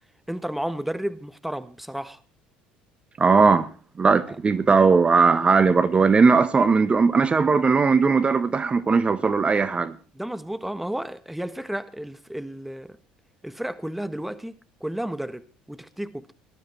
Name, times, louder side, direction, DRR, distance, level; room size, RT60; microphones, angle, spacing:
voice 1, 0.3-2.2 4.3-4.4 10.1-13.0 13.4-16.3, right 1 dB, 5° right, 1.5 m, -32 dB
voice 2, 3.2-3.7 4.0-10.0, right 4 dB, 30° right, 1.3 m, -18 dB
18.5 x 12.5 x 4.5 m
hypercardioid pair, 65°, 4 cm